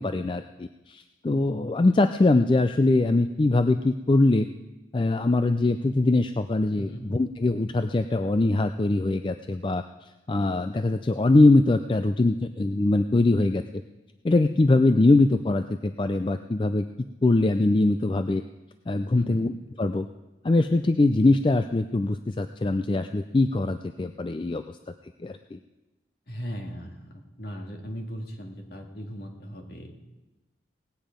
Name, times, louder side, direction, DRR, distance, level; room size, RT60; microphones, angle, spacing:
voice 1, 0.0-4.5 4.9-9.8 10.3-13.6 14.2-16.8 17.2-18.4 18.9-19.5 19.8-20.1 20.4-24.8 25.2-25.6, left 2 dB, 25° left, 9 dB, 0.3 m, -22 dB
voice 2, 6.8-7.1 19.1-19.4 26.3-29.9, equal, 55° left, 2 dB, 1.9 m, -38 dB
18.0 x 9.3 x 5.1 m, 1.1 s
head